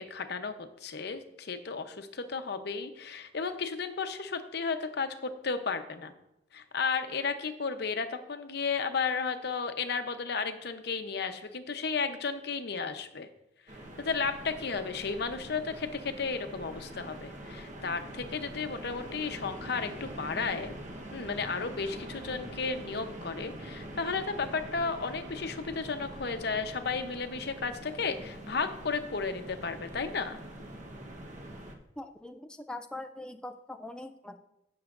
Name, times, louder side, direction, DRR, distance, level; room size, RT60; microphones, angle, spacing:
voice 1, 0.0-6.1 6.5-13.3 14.0-20.7 21.1-30.4, left 5 dB, 65° left, 8 dB, 0.7 m, -33 dB
sound 1, 13.7-31.7, right 1 dB, 45° right, 1.1 m, -44 dB
voice 2, 32.0-34.4, left 2 dB, 5° left, 5 dB, 0.3 m, -42 dB
15.5 x 6.3 x 2.5 m, 0.87 s
head